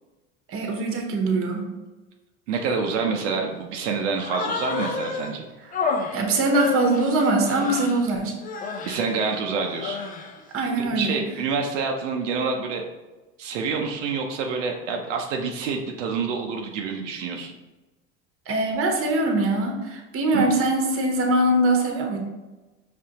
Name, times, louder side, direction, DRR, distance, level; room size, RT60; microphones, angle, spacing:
voice 1, 0.5-1.7 6.1-8.3 10.5-11.3 18.5-22.2, right 2 dB, 40° right, 2 dB, 1.0 m, -22 dB
voice 2, 2.5-5.4 8.8-10.0 10.8-12.8 13.4-17.5 20.3-20.5, right 5 dB, 85° right, 2 dB, 0.7 m, -27 dB
Human voice, 4.2-5.3 5.7-8.1 8.4-9.0 9.6-10.4, left 4 dB, 25° left, 0.5 m, -30 dB
5.0 x 3.3 x 2.9 m, 1.1 s
supercardioid pair, 95°, 36 cm